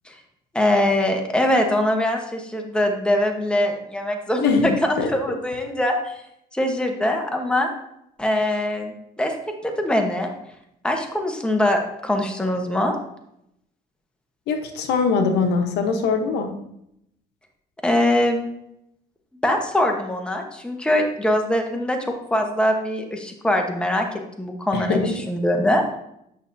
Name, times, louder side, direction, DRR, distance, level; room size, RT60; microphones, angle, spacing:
voice 1, 0.5-6.2 6.5-7.7 8.2-9.3 9.6-10.3 10.8-13.0 17.8-18.4 19.4-24.1 24.4-25.8, left 1 dB, 5° left, 3 dB, 1.0 m, -22 dB
voice 2, 4.4-5.1 14.5-16.5 24.7-25.1, left 4 dB, 80° left, 5 dB, 1.0 m, -22 dB
9.0 x 6.0 x 2.7 m, 0.78 s
cardioid pair, 110°, 17 cm